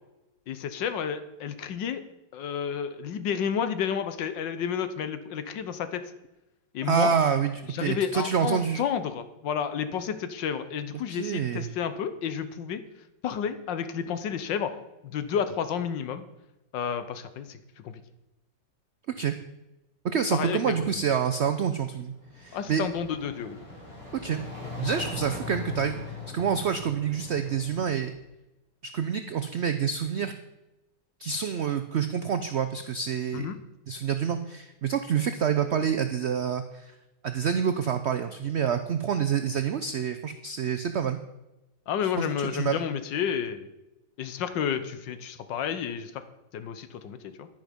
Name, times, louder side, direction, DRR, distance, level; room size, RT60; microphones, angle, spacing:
voice 1, 0.5-2.0 2.3-6.0 6.7-7.1 7.7-12.8 13.2-14.7 15.0-16.2 16.7-18.0 20.3-21.0 22.5-23.6 33.3-33.6 41.9-43.7 44.2-46.2 46.5-47.5, left 8 dB, 85° left, 11 dB, 1.6 m, -31 dB
voice 2, 6.8-8.8 11.1-11.7 19.2-19.3 20.0-22.8 24.2-24.4 24.8-28.1 28.9-30.3 31.2-33.5 33.9-36.9 37.2-41.2 42.0-42.8, right 7 dB, 85° right, 9 dB, 0.5 m, -27 dB
sound 1, 22.1-28.1, left 4 dB, 30° left, 5.9 m, -40 dB
10.5 x 10.5 x 5.2 m, 0.98 s
omnidirectional pair, 1.9 m